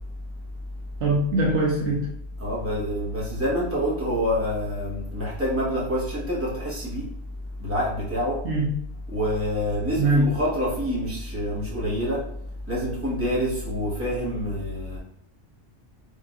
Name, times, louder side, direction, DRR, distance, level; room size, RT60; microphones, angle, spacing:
voice 1, 1.0-2.1 8.4-8.7 10.0-10.3, right 2 dB, 70° right, -1 dB, 0.9 m, -22 dB
voice 2, 2.4-7.1 7.6-8.4 9.1-12.2 12.7-15.0, equal, 10° right, -6 dB, 1.0 m, -27 dB
3.7 x 2.9 x 2.3 m, 0.70 s
omnidirectional pair, 1.3 m